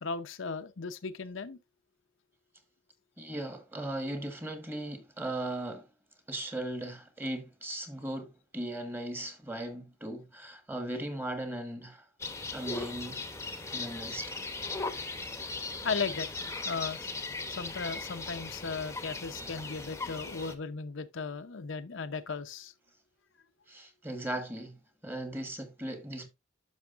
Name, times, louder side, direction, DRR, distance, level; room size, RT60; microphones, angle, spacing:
voice 1, 0.0-1.6 15.8-16.3 16.6-17.1 17.6-22.7, left 4 dB, 75° left, 0.7 m, -36 dB
voice 2, 3.2-5.9 6.3-12.0 12.5-13.2 13.7-14.4 23.7-26.3, right 1 dB, 10° right, 1.3 m, -38 dB
sound 1, 12.2-20.6, left 3 dB, 15° left, 0.9 m, -38 dB
10.5 x 6.3 x 2.5 m
head